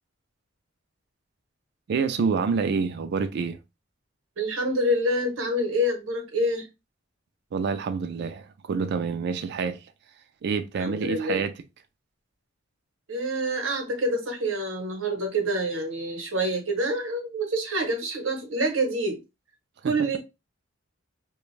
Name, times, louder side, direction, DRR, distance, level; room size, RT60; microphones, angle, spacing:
voice 1, 1.9-3.6 7.5-9.8 10.4-11.5 19.8-20.1, right 5 dB, 55° right, 0.3 m, -27 dB
voice 2, 4.4-6.7 10.8-11.4 13.1-19.2 19.8-20.2, right 1 dB, 75° right, 0.8 m, -27 dB
2.4 x 2.2 x 3.1 m
head